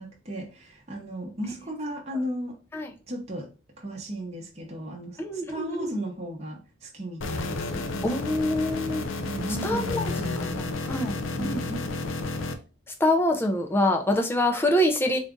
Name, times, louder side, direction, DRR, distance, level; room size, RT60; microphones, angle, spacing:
voice 1, 0.0-2.6 3.1-3.5 3.8-8.4 8.7-8.9 9.2-10.8 11.3-11.9, right 1 dB, 30° right, -2 dB, 0.7 m, -36 dB
voice 2, 5.2-5.9 8.0-9.1 9.6-10.1 10.9-11.9 13.0-15.2, left 1 dB, 10° left, 3 dB, 0.4 m, -25 dB
sound 1, 7.2-12.5, left 3 dB, 70° left, 0.5 m, -31 dB
3.8 x 2.4 x 3.5 m, 0.34 s
head